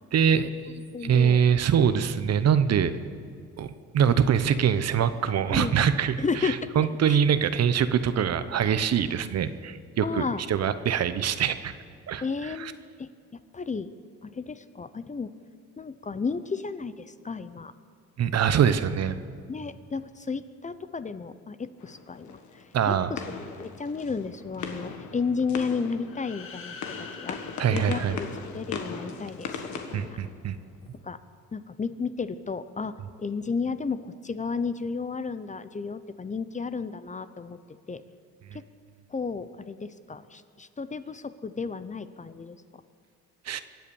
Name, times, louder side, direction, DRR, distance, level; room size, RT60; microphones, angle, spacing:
voice 1, 0.1-0.5 1.0-2.9 3.6-11.7 12.1-12.7 18.2-19.2 22.7-23.1 27.6-28.2 29.9-30.6 38.5-38.6 43.5-43.6, right 8 dB, 55° right, 13 dB, 0.9 m, -24 dB
voice 2, 0.9-1.4 5.5-5.8 6.2-6.7 7.1-7.2 10.0-10.4 12.2-13.1 13.5-13.9 14.2-15.3 15.8-17.7 19.5-22.4 22.9-26.8 27.2-27.4 27.7-28.0 28.5-30.2 31.0-31.2 31.5-37.6 37.9-38.0 38.5-38.6 39.1-42.6, left 5 dB, 25° left, 13 dB, 0.7 m, -33 dB
sound 1, 21.8-30.9, left 5 dB, 70° left, 1.6 m, -39 dB
sound 2, 26.0-29.0, left 5 dB, 45° left, 1.9 m, -45 dB
23.5 x 8.3 x 7.1 m, 2.1 s
cardioid pair, 90°, 30 cm